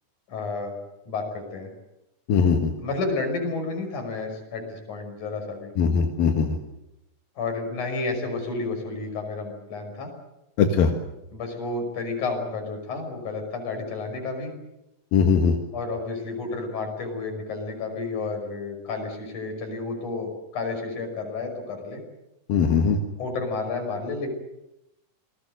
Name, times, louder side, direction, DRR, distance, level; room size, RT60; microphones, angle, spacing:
voice 1, 0.3-0.7 1.1-1.7 2.8-5.7 7.4-10.1 11.3-14.5 15.7-22.0 23.2-24.3, left 3 dB, 60° left, 4 dB, 7.3 m, -31 dB
voice 2, 2.3-2.7 5.8-6.6 10.6-10.9 15.1-15.6 22.5-23.0, left 6 dB, 90° left, 4 dB, 3.5 m, -20 dB
28.0 x 20.5 x 8.0 m, 0.89 s
omnidirectional pair, 4.0 m